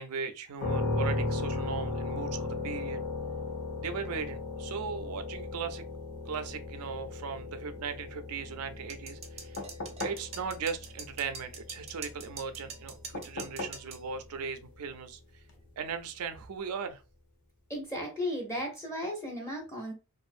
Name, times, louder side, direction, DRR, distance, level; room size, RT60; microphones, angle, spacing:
voice 1, 0.0-3.0 3.8-5.8 6.3-9.6 10.0-15.2 15.8-17.0, right 6 dB, 90° right, 0.4 m, -38 dB
sound 1, 0.6-14.3, left 2 dB, 85° left, 1.1 m, -37 dB
sound 2, 8.9-14.0, right 5 dB, 30° right, 0.5 m, -44 dB
sound 3, 9.6-10.3 13.1-13.9 15.5-15.6, left 2 dB, 50° left, 0.6 m, -38 dB
voice 2, 17.7-19.9, equal, 15° left, 0.7 m, -35 dB
2.6 x 2.4 x 2.4 m
head